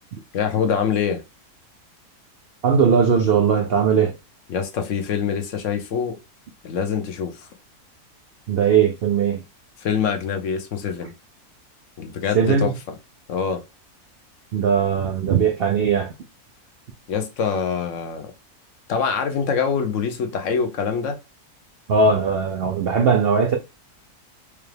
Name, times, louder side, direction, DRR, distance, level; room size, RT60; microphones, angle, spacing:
voice 1, 0.3-1.2 4.5-6.2 6.6-7.5 9.8-11.1 12.0-12.9 13.3-13.6 17.1-18.3 18.9-21.2, left 6 dB, 60° left, 0.9 m, -24 dB
voice 2, 2.6-4.1 8.5-9.4 12.3-12.7 14.5-16.1 21.9-23.6, right 6 dB, 70° right, 0.5 m, -19 dB
4.8 x 2.3 x 3.2 m
omnidirectional pair, 1.6 m